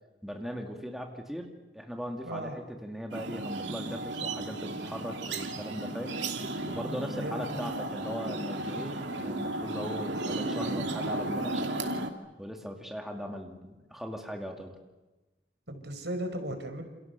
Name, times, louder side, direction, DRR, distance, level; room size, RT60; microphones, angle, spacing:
voice 1, 0.2-6.2 6.7-11.7 12.4-14.8, equal, ahead, 3 dB, 2.3 m, -39 dB
sound 1, 3.1-12.1, right 2 dB, 90° right, 2.7 m, -34 dB
voice 2, 7.1-7.7 15.7-16.8, right 1 dB, 70° right, 6 dB, 4.7 m, -36 dB
28.5 x 28.0 x 6.8 m, 1.1 s
head